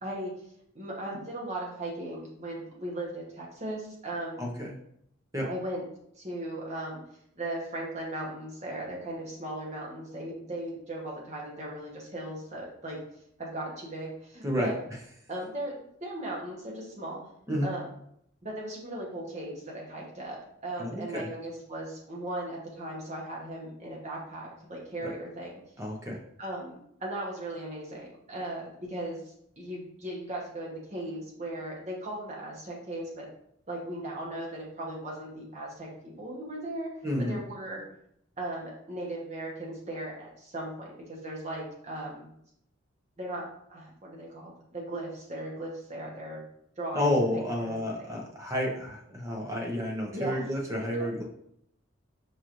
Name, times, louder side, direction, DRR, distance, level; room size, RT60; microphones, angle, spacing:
voice 1, 0.0-0.3 0.7-4.5 5.4-5.8 6.1-7.0 7.4-13.0 13.4-14.8 15.3-17.2 17.6-17.9 18.4-20.4 20.6-25.5 26.4-26.7 27.0-29.2 29.6-33.3 33.7-36.9 37.3-37.8 38.4-42.3 43.2-46.4 46.8-47.1 47.6-48.2 50.1-50.5 50.8-51.1, right 1 dB, 35° right, -3 dB, 1.0 m, -37 dB
voice 2, 4.4-4.7 5.3-5.5 14.4-14.7 17.5-17.7 20.8-21.3 25.0-25.1 25.8-26.2 37.0-37.3 46.9-51.2, left 1 dB, 15° right, -1 dB, 0.6 m, -30 dB
4.8 x 3.0 x 2.5 m, 0.72 s
head